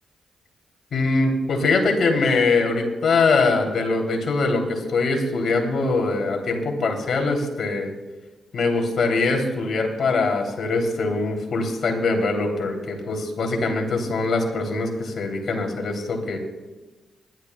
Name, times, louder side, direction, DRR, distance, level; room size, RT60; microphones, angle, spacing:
voice 1, 0.9-7.9 8.5-16.4, left 3 dB, 65° left, 1 dB, 3.1 m, -22 dB
24.0 x 11.5 x 2.3 m, 1.2 s
supercardioid pair, 50°, 0 cm